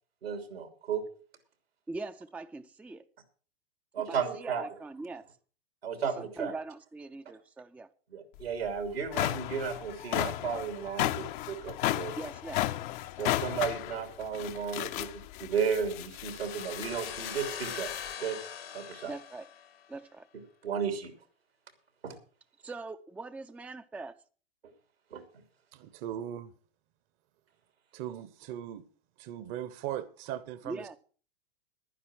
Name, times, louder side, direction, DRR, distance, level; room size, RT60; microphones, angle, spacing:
voice 1, 0.2-1.0 3.9-4.6 5.8-6.5 8.1-12.2 13.2-17.9 18.2-18.4 18.7-19.1 20.6-21.1 22.0-22.2 25.1-25.2, right 6 dB, 85° right, 3.0 m, -34 dB
voice 2, 1.9-3.0 4.1-5.3 6.2-7.9 12.2-12.7 19.0-19.5 19.9-20.2 22.6-24.1 30.6-31.0, right 3 dB, 5° right, 0.5 m, -42 dB
sound 1, 8.4-8.5 8.9-18.1, left 15 dB, 55° left, 0.8 m, -34 dB
sound 2, 16.2-19.9, left 8 dB, 80° left, 2.1 m, -42 dB
voice 3, 25.7-26.5 27.9-28.8 29.2-30.9, right 11 dB, 45° right, 1.1 m, -39 dB
11.5 x 10.0 x 6.2 m
hypercardioid pair, 100°, 30 cm